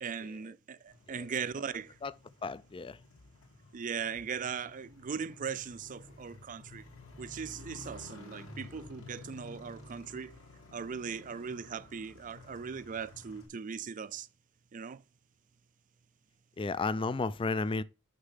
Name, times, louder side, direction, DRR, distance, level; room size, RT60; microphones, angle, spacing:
voice 1, 0.0-2.0 3.7-6.8 7.2-10.4 10.7-14.3 14.7-15.0, right 6 dB, 40° right, 0.4 m, -39 dB
Motorcycle, 0.9-13.5, left 2 dB, 70° left, 2.2 m, -52 dB
voice 2, 2.4-3.0 16.6-17.8, left 3 dB, 25° left, 0.4 m, -33 dB
6.6 x 5.8 x 5.6 m
head